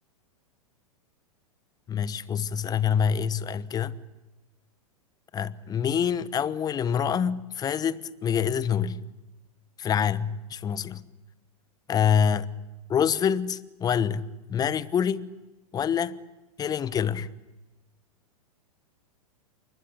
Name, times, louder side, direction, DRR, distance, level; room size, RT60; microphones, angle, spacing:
voice 1, 1.9-4.0 5.3-9.0 9.8-11.0 11.9-12.5 12.9-15.3 15.7-16.2 16.6-17.3, left 7 dB, 20° left, 1.1 m, -26 dB
29.0 x 23.5 x 8.4 m
figure-of-eight pair, 100°, 19 cm